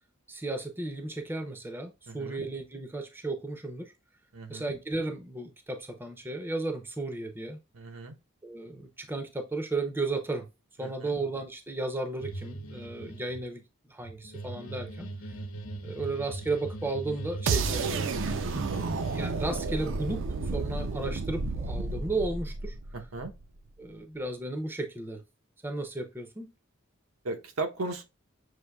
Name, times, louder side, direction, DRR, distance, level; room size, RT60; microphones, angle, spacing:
voice 1, 0.3-3.9 4.5-7.6 8.4-10.5 10.8-13.6 13.9-15.1 15.8-18.1 19.1-20.2 20.5-22.7 23.8-25.2 25.6-26.5, right 2 dB, 10° right, 0.5 m, -34 dB
voice 2, 2.1-2.4 4.3-4.7 7.7-8.1 10.8-11.1 17.7-17.9 22.9-23.3 27.2-28.0, right 3 dB, 80° right, 0.8 m, -37 dB
sound 1, 12.2-13.4 14.0-19.3, right 2 dB, 70° left, 0.9 m, -39 dB
sound 2, 17.5-23.4, right 4 dB, 60° right, 0.4 m, -31 dB
6.4 x 2.6 x 2.2 m
head